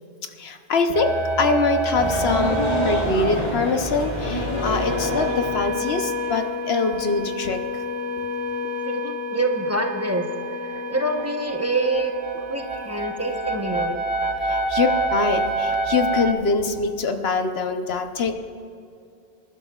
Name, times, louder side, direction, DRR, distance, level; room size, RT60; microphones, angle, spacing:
voice 1, 0.4-1.1 1.4-7.8 14.4-18.3, left 4 dB, 75° left, 6 dB, 1.1 m, -24 dB
sound 1, 0.9-16.3, right 1 dB, 80° right, 1.4 m, -28 dB
sound 2, 1.9-6.4, left 1 dB, 45° left, 1.9 m, -27 dB
voice 2, 8.8-12.1 12.4-14.0, right 2 dB, 15° right, 2 dB, 0.9 m, -26 dB
25.5 x 11.5 x 2.4 m, 2.5 s
omnidirectional pair, 1.1 m